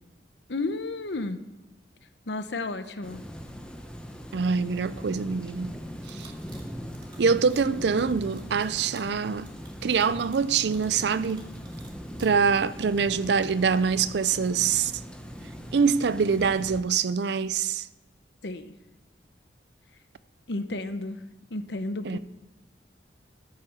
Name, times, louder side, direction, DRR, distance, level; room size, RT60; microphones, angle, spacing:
voice 1, 0.5-1.4 2.3-3.2 18.4-18.7 20.5-21.2 21.5-22.2, left 2 dB, 70° left, 0.9 m, -32 dB
sound 1, 3.0-16.8, equal, 5° left, 1.0 m, -40 dB
voice 2, 4.3-5.8 6.1-6.3 7.2-9.5 9.8-11.5 12.2-14.9 15.7-17.9 22.1-22.2, right 5 dB, 65° right, 0.5 m, -24 dB
sound 2, 5.9-12.3, right 4 dB, 30° right, 2.2 m, -54 dB
13.0 x 6.6 x 7.1 m
head